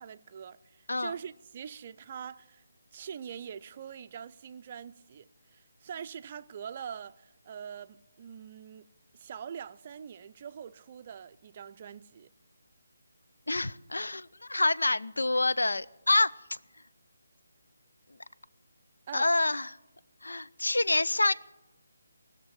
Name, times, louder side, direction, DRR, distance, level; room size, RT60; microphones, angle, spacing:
voice 1, 0.0-2.6 2.9-12.3 19.1-19.3, right 8 dB, 35° right, 0.4 m, -44 dB
voice 2, 13.5-16.6 19.1-19.7 20.2-21.3, left 2 dB, 70° left, 0.4 m, -27 dB
19.0 x 6.6 x 9.9 m
figure-of-eight pair, 150°, 0 cm